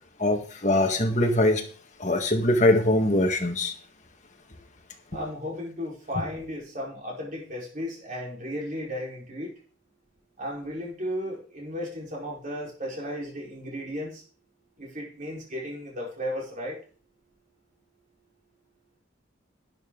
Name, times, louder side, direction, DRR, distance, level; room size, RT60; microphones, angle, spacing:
voice 1, 0.2-1.6 2.0-3.7, left 1 dB, 35° left, 1.8 m, -22 dB
voice 2, 5.1-9.5 10.4-14.2 14.8-16.8, equal, 40° right, 4.8 m, -34 dB
12.0 x 9.3 x 4.0 m
head